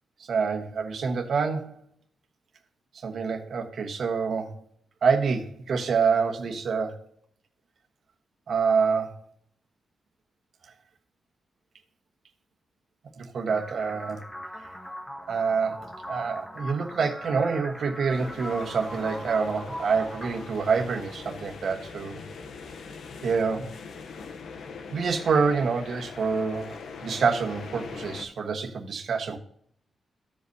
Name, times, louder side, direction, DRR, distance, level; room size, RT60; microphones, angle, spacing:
voice 1, 0.3-1.8 2.9-4.5 5.0-7.0 8.5-9.2 13.2-14.2 15.3-22.2 23.2-23.8 24.9-29.4, right 5 dB, 60° right, 3 dB, 1.2 m, -27 dB
sound 1, 13.5-21.4, equal, 5° left, 0.7 m, -41 dB
sound 2, 18.1-28.2, left 5 dB, 70° left, 0.7 m, -42 dB
15.5 x 5.3 x 2.7 m, 0.67 s
wide cardioid pair, 160°, 0 cm